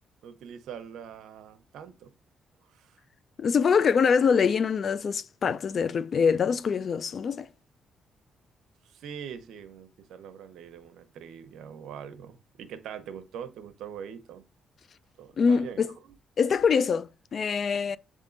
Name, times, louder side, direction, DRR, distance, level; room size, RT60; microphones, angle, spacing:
voice 1, 0.2-2.1 2.7-3.0 8.8-14.4 15.2-15.8, right 8 dB, 80° right, 0.9 m, -43 dB
voice 2, 3.4-7.5 15.4-15.9 16.4-18.0, left 6 dB, 50° left, 0.4 m, -24 dB
7.6 x 3.7 x 3.9 m
cardioid pair, 90°, 0 cm